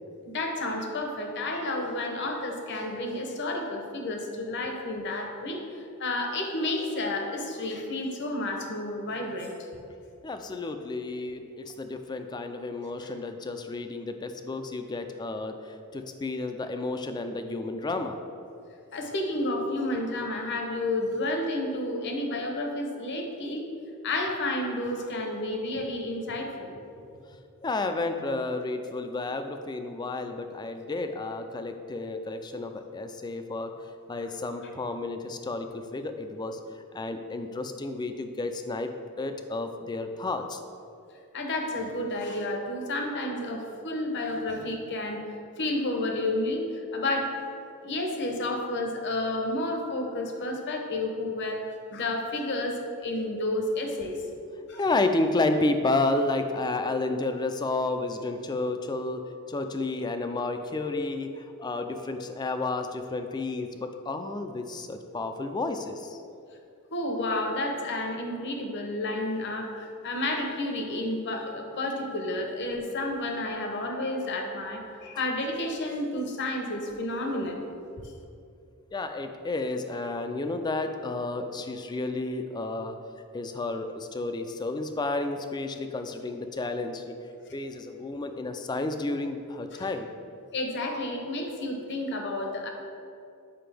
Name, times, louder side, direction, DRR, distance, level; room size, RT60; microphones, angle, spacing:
voice 1, 0.2-5.6 6.0-9.5 13.0-13.1 18.9-23.7 24.0-26.7 41.3-45.2 45.6-47.4 47.8-51.7 51.9-54.2 54.7-54.8 66.9-77.6 89.7-89.8 90.5-92.7, left 1 dB, 55° left, 3 dB, 0.8 m, -31 dB
voice 2, 10.2-18.2 27.6-33.7 34.1-38.9 39.2-40.6 54.7-59.2 59.5-66.2 78.9-83.0 83.3-87.0 87.5-90.1, left 2 dB, 20° left, 7 dB, 0.3 m, -31 dB
7.7 x 5.2 x 3.4 m, 2.5 s
head